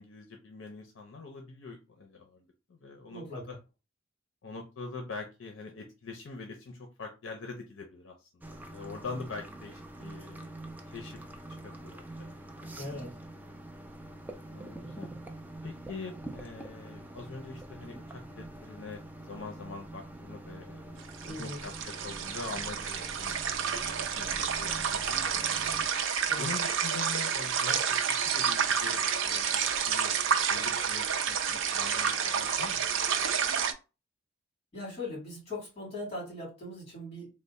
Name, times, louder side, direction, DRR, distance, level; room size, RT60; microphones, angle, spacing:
voice 1, 0.0-2.4 2.7-3.6 4.4-10.5 10.9-11.2 11.6-12.8 14.5-15.1 15.6-23.4 23.6-25.7 26.3-30.2 30.5-32.8, left 4 dB, 70° left, 3 dB, 0.6 m, -44 dB
voice 2, 3.1-3.6 12.8-13.1 21.2-21.6 26.3-26.5 34.7-37.3, left 2 dB, 30° left, -3 dB, 2.0 m, -40 dB
sound 1, 8.4-25.9, right 1 dB, 10° right, 0.4 m, -45 dB
sound 2, 21.0-33.7, right 7 dB, 75° right, 0.5 m, -29 dB
3.2 x 2.0 x 4.0 m, 0.29 s
head